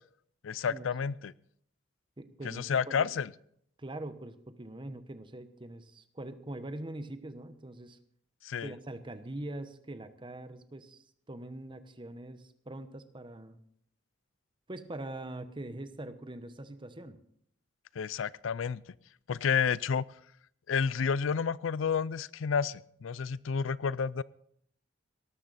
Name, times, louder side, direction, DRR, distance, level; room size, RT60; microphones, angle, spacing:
voice 1, 0.4-1.3 2.4-3.3 8.4-8.7 18.0-18.8 19.3-20.1 20.7-24.2, left 6 dB, 85° left, 21 dB, 0.4 m, -30 dB
voice 2, 2.2-3.1 3.8-8.0 8.6-13.6 14.7-17.2, right 1 dB, 25° right, 11 dB, 1.0 m, -43 dB
18.0 x 13.0 x 4.1 m, 0.67 s
head